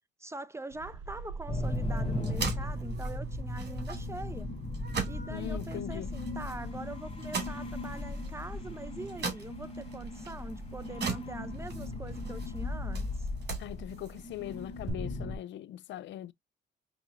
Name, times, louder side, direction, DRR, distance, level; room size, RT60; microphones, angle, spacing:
voice 1, 0.2-4.5 5.1-13.1, right 2 dB, 15° right, 0.5 m, -43 dB
sound 1, 0.7-15.3, right 4 dB, 75° right, 0.6 m, -48 dB
sound 2, 1.5-15.4, left 2 dB, 30° left, 1.1 m, -37 dB
sound 3, 1.6-14.9, right 5 dB, 55° right, 2.1 m, -41 dB
voice 2, 5.3-6.1 13.6-16.3, left 12 dB, 70° left, 0.4 m, -41 dB
5.4 x 3.1 x 2.4 m
cardioid pair, 90°, 20 cm